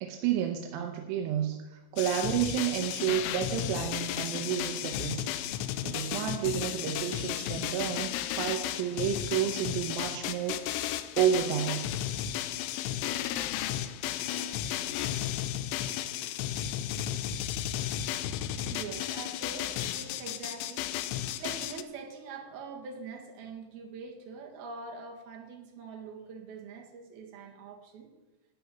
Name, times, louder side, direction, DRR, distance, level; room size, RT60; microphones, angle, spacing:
voice 1, 0.0-5.2 5.8-10.7 11.2-11.9, right 10 dB, 80° right, 4 dB, 2.6 m, -31 dB
sound 1, 2.0-21.8, left 12 dB, 85° left, 2.9 m, -34 dB
voice 2, 18.7-20.9 21.4-28.1, right 4 dB, 60° right, 0 dB, 3.3 m, -43 dB
13.0 x 6.0 x 9.3 m, 1.1 s
omnidirectional pair, 5.6 m